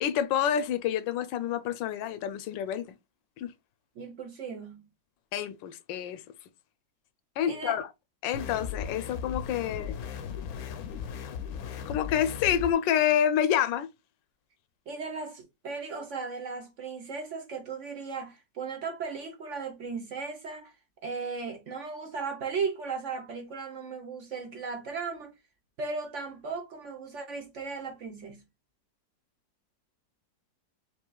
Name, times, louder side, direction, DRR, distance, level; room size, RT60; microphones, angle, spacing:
voice 1, 0.0-2.9 3.4-3.5 5.3-6.2 7.4-7.9 8.2-10.0 11.9-13.9, left 9 dB, 85° left, 1.3 m, -28 dB
voice 2, 4.0-4.9 7.5-7.8 14.9-20.7 21.0-25.3 25.8-28.4, right 5 dB, 55° right, 0.9 m, -36 dB
sound 1, 8.3-12.7, left 7 dB, 65° left, 1.0 m, -37 dB
5.4 x 2.9 x 2.2 m
omnidirectional pair, 1.9 m